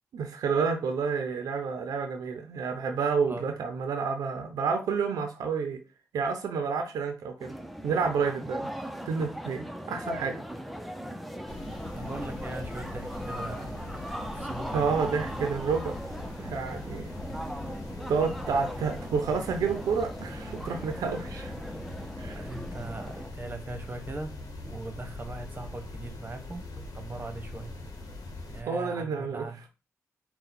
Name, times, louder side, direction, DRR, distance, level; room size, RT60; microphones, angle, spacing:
voice 1, 0.1-5.8 6.1-7.5 7.8-8.7 9.1-10.4 14.7-15.9 16.4-17.1 18.1-21.5 22.2-22.4 28.7-29.7, right 5 dB, 80° right, 0.5 m, -29 dB
sound 1, 7.4-23.3, equal, ahead, 0.7 m, -39 dB
sound 2, 11.5-28.6, left 2 dB, 75° left, 1.0 m, -42 dB
voice 2, 11.9-14.0 14.3-15.4 18.7-18.8 22.3-24.3 24.6-27.7 28.5-29.6, right 2 dB, 35° right, 1.0 m, -40 dB
3.8 x 2.2 x 4.2 m
supercardioid pair, 50°, 6 cm